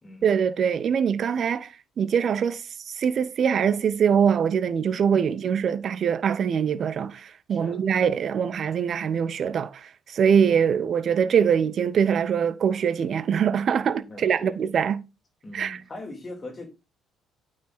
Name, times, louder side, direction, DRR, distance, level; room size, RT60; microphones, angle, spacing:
voice 1, 0.2-15.0 15.5-15.8, right 7 dB, 50° right, 0.8 m, -23 dB
voice 2, 7.5-7.8 14.0-14.6 15.4-16.7, left 2 dB, 30° left, 3.1 m, -41 dB
9.1 x 5.2 x 4.1 m
figure-of-eight pair, 50°, 0 cm